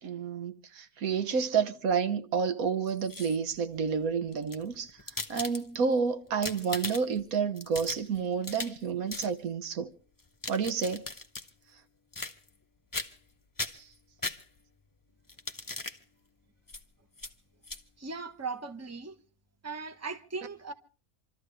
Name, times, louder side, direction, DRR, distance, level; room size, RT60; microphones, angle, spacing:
voice 1, 0.0-5.0 5.3-9.9 10.5-11.1 13.7-13.9, right 6 dB, 75° right, 1.4 m, -30 dB
sound 1, 2.9-3.6 4.3-5.9 6.3-7.2 7.6-8.8 9.1-9.3 10.2-11.5 12.1-12.6 12.9-13.3 13.6-14.8 15.3-16.0 16.7-16.8 17.2-17.3 17.6-17.8, left 3 dB, 15° left, 0.8 m, -38 dB
voice 2, 18.0-19.2 19.6-20.7, right 4 dB, 10° right, 1.1 m, -38 dB
27.5 x 13.5 x 3.4 m
omnidirectional pair, 1.5 m